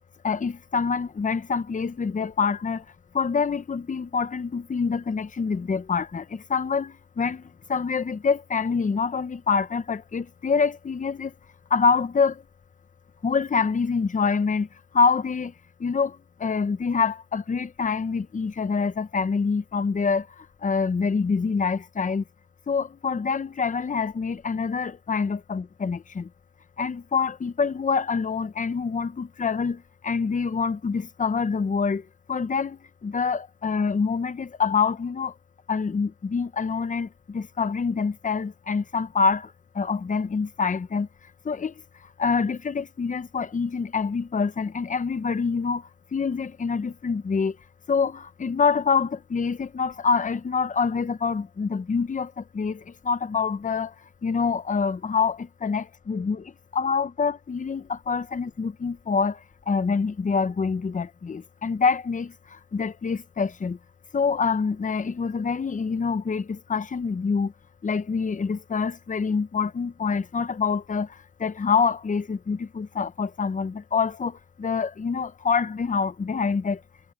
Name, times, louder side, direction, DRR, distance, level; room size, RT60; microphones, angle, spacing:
voice 1, 0.2-2.8 3.1-11.3 11.7-12.4 13.2-14.7 14.9-15.5 15.8-22.2 22.7-26.3 26.8-35.3 35.7-41.1 41.4-41.7 42.0-47.6 47.9-53.9 54.2-63.8 64.1-67.5 67.8-76.8, left 5 dB, 25° left, 0.9 m, -26 dB
cardioid pair, 90°, 30 cm